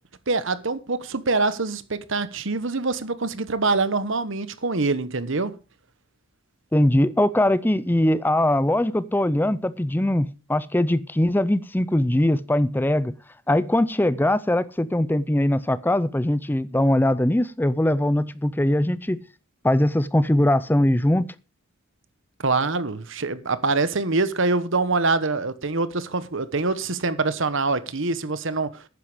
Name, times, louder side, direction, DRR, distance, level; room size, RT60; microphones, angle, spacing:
voice 1, 0.3-5.5 22.4-28.8, right 3 dB, 60° right, 1.1 m, -24 dB
voice 2, 6.7-13.1 13.5-19.2 19.6-21.3, left 1 dB, 10° left, 0.5 m, -21 dB
11.5 x 9.6 x 5.0 m
head